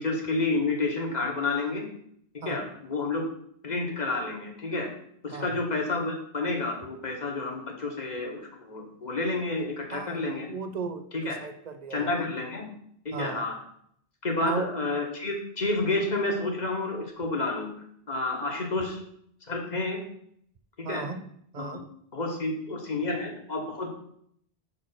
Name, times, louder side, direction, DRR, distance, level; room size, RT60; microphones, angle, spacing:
voice 1, 0.0-1.9 2.3-3.2 3.6-4.9 5.2-10.5 11.1-11.4 11.9-12.6 13.0-13.5 14.2-17.7 18.1-19.0 19.5-20.0 20.8-21.0 21.6-21.8 22.1-23.9, left 2 dB, 45° left, 1 dB, 1.4 m, -30 dB
voice 2, 9.9-12.3 13.1-13.4 14.4-14.7 20.8-21.2 21.5-21.8, right 4 dB, 45° right, 9 dB, 0.6 m, -36 dB
6.4 x 4.3 x 5.6 m, 0.68 s
omnidirectional pair, 1.1 m